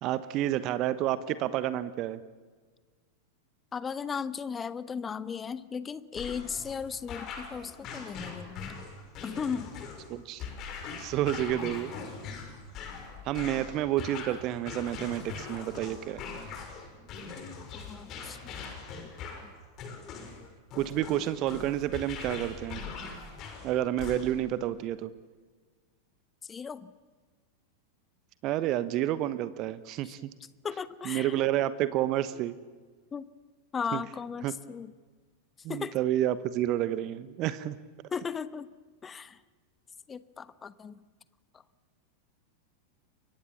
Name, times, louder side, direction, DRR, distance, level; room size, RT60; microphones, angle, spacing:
voice 1, 0.0-2.2 10.1-10.4 11.0-11.9 13.2-16.2 20.7-22.8 23.6-25.1 28.4-30.2 31.1-32.6 33.9-34.0 34.4-34.5 35.6-37.8, right 13 dB, 40° right, 15 dB, 1.1 m, -29 dB
voice 2, 3.7-8.9 9.2-9.7 17.7-18.5 19.4-19.5 26.4-26.9 30.0-30.1 30.6-31.4 33.1-33.3 33.7-34.9 35.7-36.0 38.1-38.7 39.0-39.4 40.1-41.0 41.5-41.6, left 6 dB, 20° left, 15 dB, 1.1 m, -36 dB
sound 1, 6.1-24.5, left 5 dB, 35° left, 5.9 m, -42 dB
30.0 x 23.5 x 7.3 m, 1.4 s
figure-of-eight pair, 90°, 0 cm